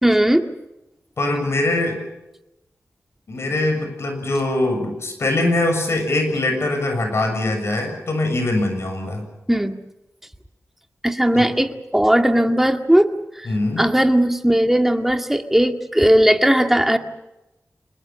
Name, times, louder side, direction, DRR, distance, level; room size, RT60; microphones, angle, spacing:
voice 1, 0.0-0.5 9.5-9.7 11.0-13.1 13.4-13.5 13.8-17.0, right 1 dB, 5° right, 6 dB, 1.9 m, -17 dB
voice 2, 1.2-2.0 3.3-9.3 11.3-11.5 13.5-13.9, left 2 dB, 60° left, 5 dB, 7.0 m, -22 dB
25.5 x 21.5 x 7.1 m, 0.95 s
wide cardioid pair, 95°, 5 cm